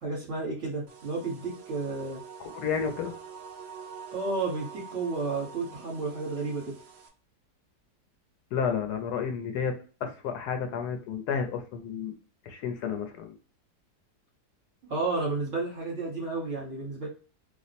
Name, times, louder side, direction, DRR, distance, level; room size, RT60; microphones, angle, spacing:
voice 1, 0.0-2.2 4.1-6.7 14.9-17.1, right 3 dB, 50° right, -3 dB, 1.3 m, -32 dB
sound 1, 0.9-7.1, right 6 dB, 70° right, 0.6 m, -46 dB
voice 2, 2.4-3.1 8.5-9.8 10.0-12.1 12.5-13.3, left 6 dB, 75° left, 5 dB, 1.1 m, -31 dB
2.9 x 2.1 x 4.0 m, 0.38 s
omnidirectional pair, 1.8 m